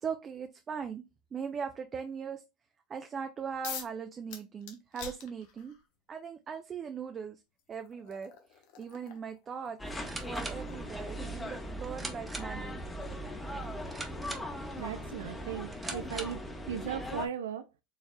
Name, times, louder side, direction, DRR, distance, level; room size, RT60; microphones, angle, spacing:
voice 1, 0.0-1.0 1.3-2.4 2.9-5.8 6.1-7.4 7.7-12.8, right 6 dB, 30° right, 0.5 m, -40 dB
sound 1, 3.6-4.0 4.3-5.9 7.0-7.1 7.6-14.2, left 8 dB, 65° left, 0.9 m, -48 dB
sound 2, 9.8-17.3, equal, 10° left, 1.0 m, -39 dB
sound 3, 9.8-16.5, right 2 dB, 15° right, 1.1 m, -45 dB
voice 2, 14.8-16.4 16.7-17.6, right 8 dB, 85° right, 0.3 m, -37 dB
4.5 x 3.3 x 2.3 m
hypercardioid pair, 90°, 0 cm